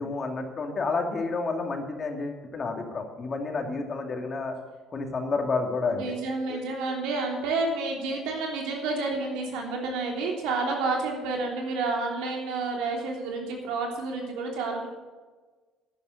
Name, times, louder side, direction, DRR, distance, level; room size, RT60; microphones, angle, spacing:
voice 1, 0.0-4.5 4.9-6.1 6.5-6.6, left 3 dB, 40° left, 3 dB, 2.5 m, -30 dB
voice 2, 5.9-14.9, right 3 dB, 75° right, 1 dB, 3.2 m, -30 dB
11.0 x 10.0 x 6.6 m, 1.3 s
hypercardioid pair, 65°, 0 cm